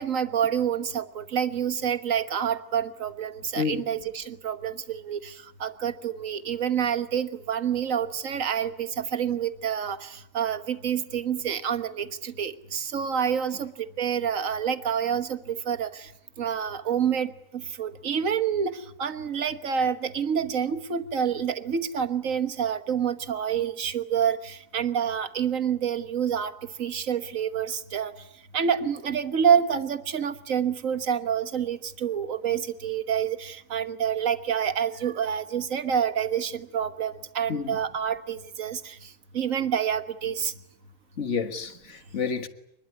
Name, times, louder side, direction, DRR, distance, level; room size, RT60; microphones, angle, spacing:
voice 1, 0.0-13.7 14.0-16.1 16.4-26.5 26.8-28.1 28.5-39.0 39.3-40.5, right 8 dB, 60° right, 1.7 m, -28 dB
voice 2, 41.2-42.5, left 6 dB, 50° left, 1.8 m, -29 dB
24.5 x 21.0 x 9.8 m
omnidirectional pair, 1.6 m